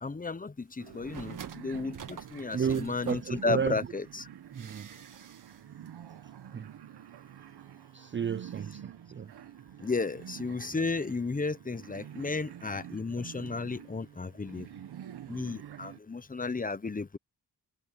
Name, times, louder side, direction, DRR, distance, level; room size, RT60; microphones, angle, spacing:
voice 1, 0.0-4.3 9.8-14.7 15.3-17.2, left 3 dB, 20° left, 1.1 m, -33 dB
sound 1, 0.8-16.0, right 10 dB, 80° right, 1.5 m, -48 dB
sound 2, 0.9-3.9 4.5-5.6 5.9-6.0, right 7 dB, 55° right, 1.7 m, -46 dB
voice 2, 2.5-3.7 4.5-4.9 6.5-6.7 7.9-9.3, right 7 dB, 30° right, 0.5 m, -32 dB
cardioid pair, 80°, 38 cm